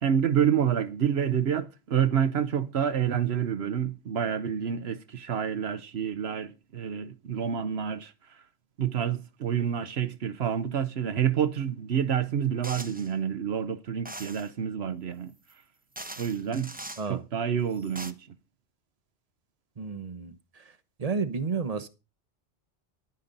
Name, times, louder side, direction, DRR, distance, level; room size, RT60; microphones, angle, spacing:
voice 1, 0.0-8.4 8.8-15.3 16.2-16.7 17.1-18.2, right 8 dB, 70° right, 1.1 m, -28 dB
sound 1, 12.6-13.1 14.0-14.5 15.5-15.6 16.0-17.1 17.7-18.1, right 1 dB, 10° right, 0.6 m, -41 dB
voice 2, 19.8-20.7 21.0-21.9, right 5 dB, 35° right, 0.9 m, -32 dB
11.5 x 9.5 x 3.9 m
omnidirectional pair, 1.2 m